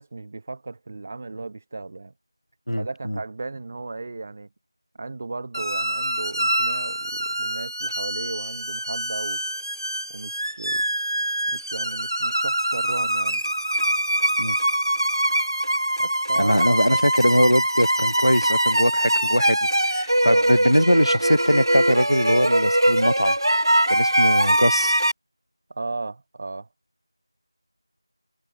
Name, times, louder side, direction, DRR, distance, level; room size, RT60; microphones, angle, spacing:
voice 1, 0.0-2.1 2.8-4.5 5.0-9.4 10.1-10.9 11.5-13.4 16.0-17.0 20.2-20.5 25.7-26.7, right 3 dB, 25° right, 3.8 m, -35 dB
voice 2, 2.7-3.2 14.4-14.6 16.4-19.6 19.8-23.4 23.9-25.0, equal, 90° left, 5.3 m, -21 dB
sound 1, 5.5-25.1, right 1 dB, 60° right, 4.8 m, -23 dB
figure-of-eight pair, 170°, 2 cm